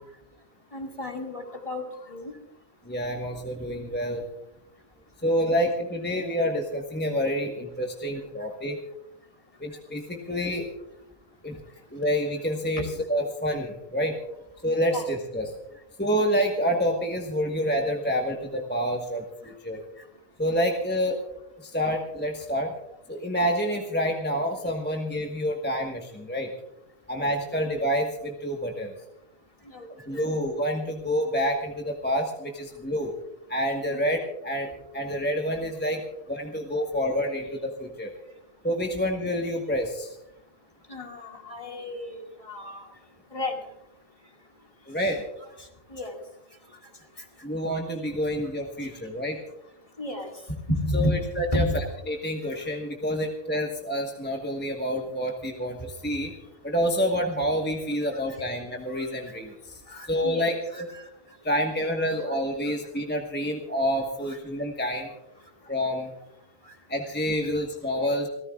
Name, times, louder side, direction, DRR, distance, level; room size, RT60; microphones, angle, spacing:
voice 1, 0.7-2.3 12.8-12.9 14.9-15.1 27.2-27.6 29.7-30.3 33.9-34.0 40.9-42.9 43.3-43.6 45.9-46.2 50.0-50.3 50.7-51.2 51.5-51.7 58.1-58.2 58.9-59.1 59.9-61.1 64.3-64.4, left 1 dB, 25° left, 1 dB, 2.1 m, -32 dB
voice 2, 2.8-4.3 5.2-8.8 9.6-10.7 11.4-11.6 11.9-14.2 14.6-15.5 16.0-19.8 20.4-21.2 21.6-22.7 23.1-26.5 27.1-28.9 30.0-33.1 33.5-36.0 36.3-38.1 38.6-40.1 44.9-45.2 47.4-49.4 50.9-56.3 56.6-59.5 60.1-60.9 61.4-65.1 65.7-66.1 66.9-68.3, equal, 10° left, 1 dB, 1.2 m, -28 dB
28.5 x 14.0 x 2.3 m, 0.88 s
omnidirectional pair, 1.3 m